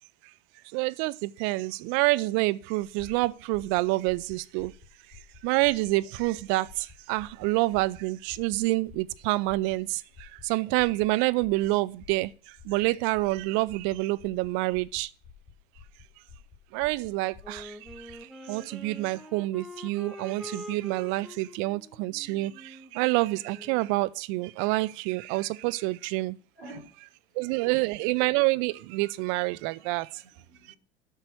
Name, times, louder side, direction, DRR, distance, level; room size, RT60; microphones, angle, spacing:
voice 1, 0.7-4.7 5.4-6.7 7.1-10.0 10.4-12.3 12.7-15.1 16.7-17.7 18.5-22.5 22.9-26.4 27.4-30.1, right 21 dB, 40° right, 0.5 m, -27 dB
sound 1, 2.8-18.2, left 6 dB, 15° left, 2.7 m, -52 dB
Wind instrument woodwind instrument, 17.4-24.0, left 1 dB, ahead, 0.7 m, -46 dB
voice 2, 26.5-27.9 29.8-30.8, right 2 dB, 80° right, 3.3 m, -49 dB
8.2 x 5.7 x 6.4 m
figure-of-eight pair, 85°, 31 cm